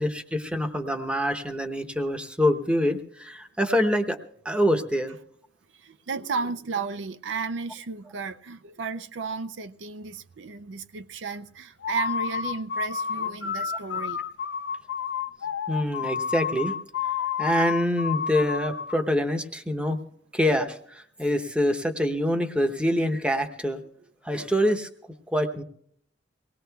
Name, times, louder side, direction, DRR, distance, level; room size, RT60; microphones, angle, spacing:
voice 1, 0.0-4.2 4.4-5.2 15.7-16.8 17.4-20.0 20.3-23.8 24.2-24.9 25.3-25.6, equal, 5° right, 0.8 m, -25 dB
voice 2, 5.7-14.2, right 4 dB, 90° right, 0.5 m, -33 dB
sound 1, 11.8-19.0, left 7 dB, 75° left, 0.5 m, -30 dB
24.0 x 18.5 x 2.3 m
head